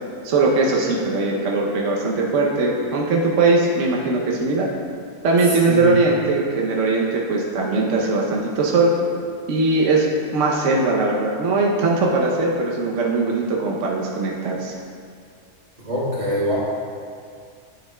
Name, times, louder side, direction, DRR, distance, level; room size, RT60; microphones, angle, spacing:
voice 1, 0.2-4.7 5.2-8.9 9.5-14.7, right 3 dB, 60° right, -2 dB, 1.0 m, -20 dB
voice 2, 15.8-16.6, equal, 85° right, -8 dB, 2.4 m, -24 dB
9.1 x 7.1 x 2.2 m, 2.3 s
omnidirectional pair, 1.6 m